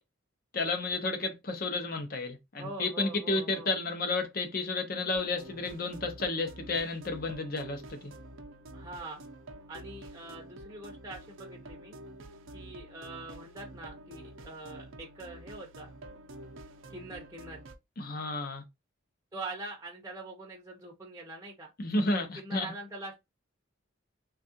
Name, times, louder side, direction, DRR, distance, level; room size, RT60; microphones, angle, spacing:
voice 1, 0.5-8.1 18.0-18.6 21.8-22.7, left 2 dB, 45° left, 0.6 m, -32 dB
voice 2, 2.6-3.7 8.7-9.2 9.7-12.0 12.5-15.9 16.9-17.6 19.3-21.7 22.4-23.1, right 2 dB, 15° right, 0.6 m, -43 dB
sound 1, 5.1-17.8, right 1 dB, 70° right, 0.6 m, -48 dB
3.4 x 2.4 x 2.7 m
head